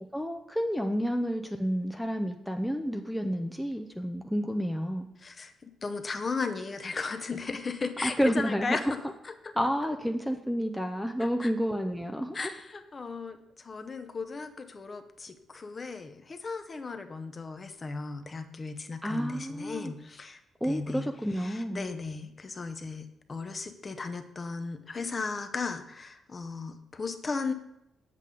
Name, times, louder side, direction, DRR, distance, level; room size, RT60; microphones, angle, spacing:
voice 1, 0.1-5.1 8.0-8.8 9.6-12.4 19.0-19.9 20.6-21.8, equal, ahead, 3 dB, 0.5 m, -30 dB
voice 2, 5.2-9.5 11.4-11.5 12.3-21.1 21.3-27.5, left 4 dB, 30° left, 8 dB, 0.7 m, -36 dB
7.8 x 7.6 x 3.8 m, 0.83 s
cardioid pair, 105°, 0 cm